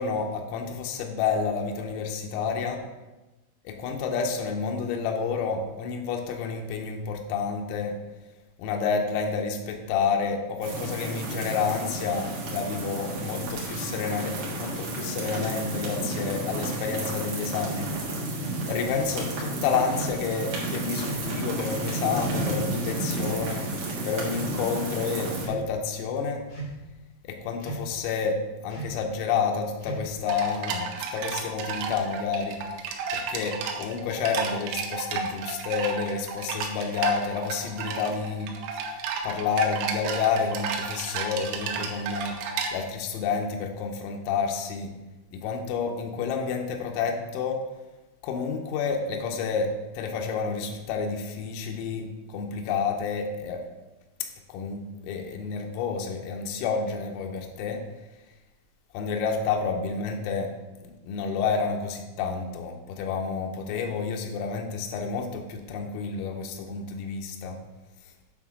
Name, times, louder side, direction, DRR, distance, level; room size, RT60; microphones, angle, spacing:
voice 1, 0.0-2.8 3.7-8.0 8.6-17.9 18.7-23.7 24.0-26.4 27.3-28.4 28.6-32.6 33.1-38.5 39.2-42.4 42.7-44.9 45.3-47.6 48.2-53.6 54.5-57.8 58.9-60.5 60.8-67.6, left 5 dB, 90° left, 2 dB, 3.5 m, -29 dB
sound 1, 10.6-25.5, right 2 dB, 60° right, 2.3 m, -32 dB
sound 2, 17.7-18.0 18.8-19.1 19.9-20.2 21.0-21.3 22.1-22.4 23.2-23.7 24.2-24.6 25.3-25.7 26.5-26.9 27.6-28.0 28.7-29.0 29.8-30.3, right 2 dB, 60° left, 1.2 m, -38 dB
sound 3, 30.3-42.7, right 5 dB, 85° right, 3.3 m, -32 dB
9.2 x 3.6 x 6.0 m, 1.1 s
omnidirectional pair, 5.8 m